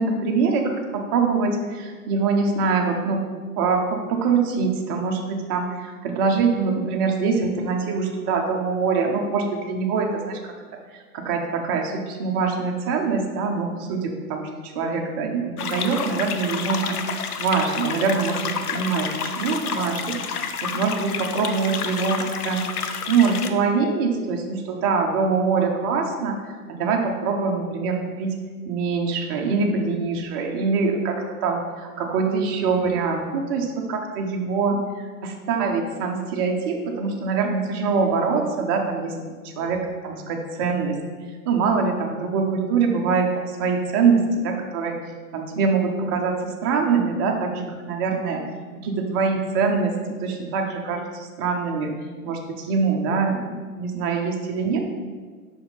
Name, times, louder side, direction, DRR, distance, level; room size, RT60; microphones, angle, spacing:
voice 1, 0.0-3.2 3.6-10.5 10.9-17.0 17.4-20.2 20.6-22.6 23.1-26.4 26.7-28.4 28.6-39.1 39.4-41.0 41.5-43.3 43.6-45.0 45.3-48.5 48.8-49.9 50.2-51.9 52.2-54.8, right 5 dB, 20° right, 2 dB, 0.3 m, -24 dB
sound 1, 15.6-23.5, left 6 dB, 80° left, 0.7 m, -29 dB
5.9 x 4.2 x 3.8 m, 1.5 s
figure-of-eight pair, 105°, 45 cm